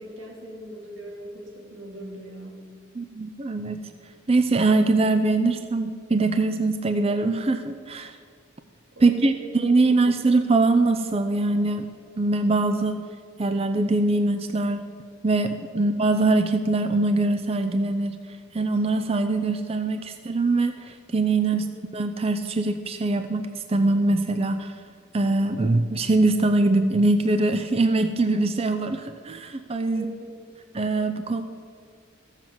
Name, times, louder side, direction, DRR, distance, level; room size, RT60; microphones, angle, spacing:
voice 1, 0.0-2.7 8.9-9.6 9.9-10.1 21.5-21.7 29.9-30.6, right 1 dB, 90° right, -1 dB, 3.2 m, -41 dB
voice 2, 3.0-3.8 4.3-8.1 9.0-11.9 12.2-13.0 13.4-14.8 15.2-18.2 18.5-21.6 21.9-24.7 25.1-30.1 30.7-31.4, right 2 dB, 30° right, 8 dB, 0.5 m, -22 dB
14.5 x 7.4 x 7.6 m, 2.2 s
head